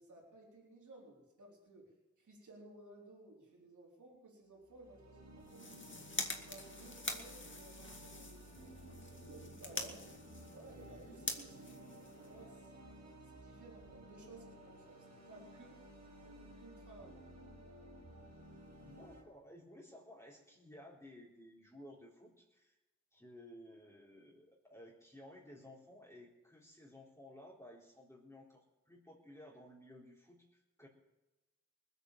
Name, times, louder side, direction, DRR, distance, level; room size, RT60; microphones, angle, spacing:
voice 1, 0.0-5.8 6.3-9.0 9.2-10.0 10.4-12.7 13.3-15.8 16.2-17.3, right 2 dB, 90° right, -2 dB, 4.2 m, -57 dB
sound 1, 4.6-19.2, right 1 dB, 65° right, 4.7 m, -55 dB
sound 2, 5.4-12.7, left 3 dB, 40° left, 2.2 m, -45 dB
voice 2, 18.8-22.8 23.1-30.9, left 1 dB, 10° left, -5 dB, 4.0 m, -56 dB
20.0 x 8.1 x 7.5 m, 1.1 s
cardioid pair, 45°, 29 cm